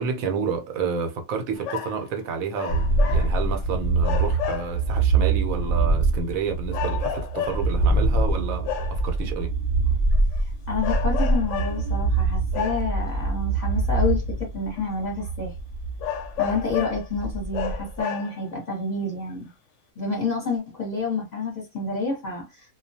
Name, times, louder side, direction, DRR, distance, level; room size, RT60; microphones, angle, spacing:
voice 1, 0.0-9.5, right 5 dB, 75° right, 1.0 m, -30 dB
sound 1, 1.6-2.1 2.5-3.6 4.0-4.9 5.6-5.7 6.7-7.8 8.6-9.1 10.1-10.4 10.8-11.9 12.5-13.1 14.0-14.1 14.8-14.9 15.2-15.3 16.0-17.1 17.5-18.5 19.3-19.4, left 9 dB, 65° left, 0.8 m, -32 dB
sound 2, 2.7-18.0, right 3 dB, 60° right, 0.5 m, -24 dB
voice 2, 10.3-15.5 16.4-19.5 20.0-22.7, left 3 dB, 35° left, 0.9 m, -29 dB
2.3 x 2.2 x 2.7 m
omnidirectional pair, 1.5 m